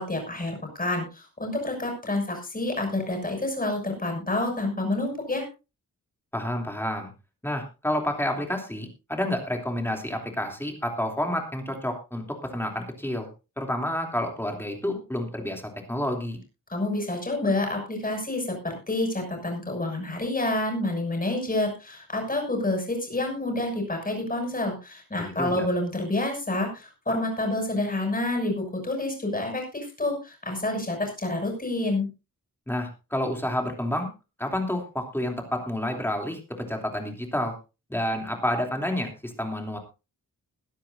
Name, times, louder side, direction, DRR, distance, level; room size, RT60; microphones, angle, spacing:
voice 1, 0.0-5.4 16.7-32.1, left 2 dB, 25° left, 2 dB, 6.5 m, -28 dB
voice 2, 6.3-7.1 7.4-13.3 13.6-16.4 25.2-25.7 32.7-34.1 34.4-37.5 37.9-39.8, left 1 dB, 5° left, 3 dB, 3.0 m, -29 dB
22.0 x 10.0 x 2.7 m, 0.30 s
wide cardioid pair, 145°, 34 cm